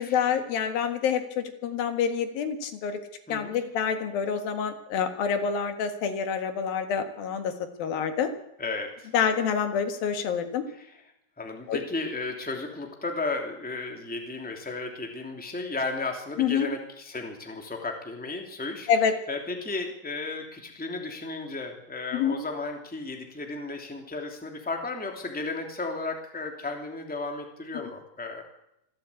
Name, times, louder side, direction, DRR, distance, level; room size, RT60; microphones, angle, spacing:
voice 1, 0.0-3.0 3.3-7.5 7.8-8.3 9.1-10.6 11.7-11.8 16.4-16.7 18.9-19.2 22.1-22.4, left 7 dB, 80° left, 7 dB, 3.6 m, -27 dB
voice 2, 8.6-9.1 10.8-10.9 11.4-18.9 19.3-28.4, left 3 dB, 5° left, 2 dB, 2.4 m, -34 dB
25.5 x 13.5 x 8.5 m, 0.83 s
omnidirectional pair, 4.1 m